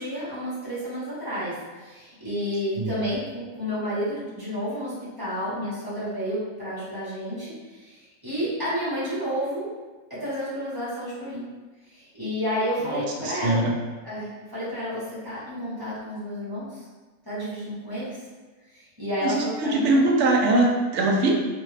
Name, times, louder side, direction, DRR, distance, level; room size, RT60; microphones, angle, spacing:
voice 1, 0.0-9.7 10.1-11.4 11.9-13.6 14.0-16.9 17.2-18.2 18.7-19.9, equal, 15° right, -10 dB, 1.2 m, -31 dB
voice 2, 12.8-13.7 19.2-21.3, right 2 dB, 60° right, 0 dB, 0.9 m, -22 dB
3.6 x 2.8 x 3.2 m, 1.3 s
omnidirectional pair, 1.5 m